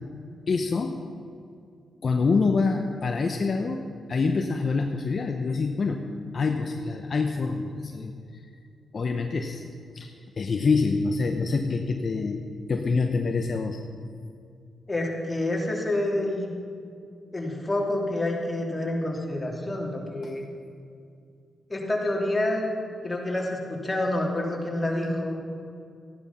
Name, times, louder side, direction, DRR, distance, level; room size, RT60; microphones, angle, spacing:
voice 1, 0.5-1.0 2.0-6.1 6.3-8.1 8.9-9.6 9.9-12.4 12.7-13.8 20.2-20.3, left 4 dB, 50° left, 4 dB, 0.8 m, -26 dB
voice 2, 14.9-16.5 17.3-20.4 21.7-22.6 23.0-25.4, left 1 dB, 20° left, -2 dB, 3.1 m, -28 dB
14.0 x 11.0 x 5.7 m, 2.4 s
cardioid pair, 70°, 0 cm